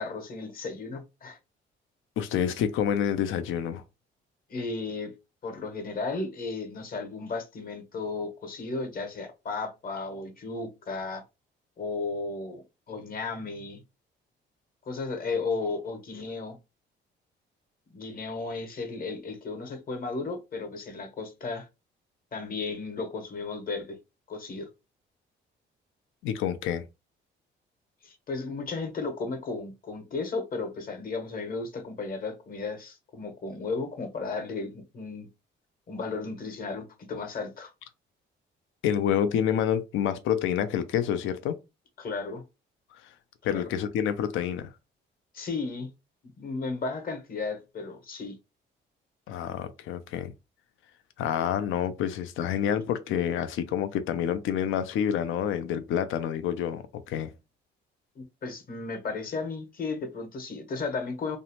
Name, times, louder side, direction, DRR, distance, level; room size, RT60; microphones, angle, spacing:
voice 1, 0.0-1.4 4.5-5.1 5.4-11.2 11.8-13.8 14.9-16.6 17.9-21.7 22.3-24.0 24.3-24.7 28.0-35.3 35.9-37.7 42.0-42.4 43.4-43.6 45.3-45.9 46.4-48.3 58.2-61.4, left 3 dB, 45° left, 0.9 m, -34 dB
voice 2, 2.2-3.8 26.2-26.8 38.8-41.6 43.4-44.7 49.3-50.3 51.2-57.3, left 9 dB, 80° left, 0.5 m, -28 dB
2.6 x 2.0 x 2.9 m
cardioid pair, 90°, 20 cm